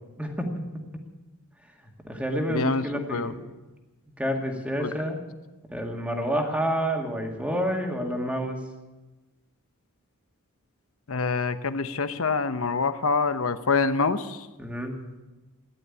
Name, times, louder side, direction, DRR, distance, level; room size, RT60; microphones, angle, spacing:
voice 1, 0.2-0.6 2.1-3.4 4.2-5.2 5.7-8.6 14.6-14.9, equal, 5° right, 1 dB, 2.1 m, -28 dB
voice 2, 2.5-3.3 4.8-4.9 11.1-14.5, left 4 dB, 65° left, 11 dB, 0.9 m, -26 dB
14.5 x 11.0 x 8.6 m, 1.1 s
head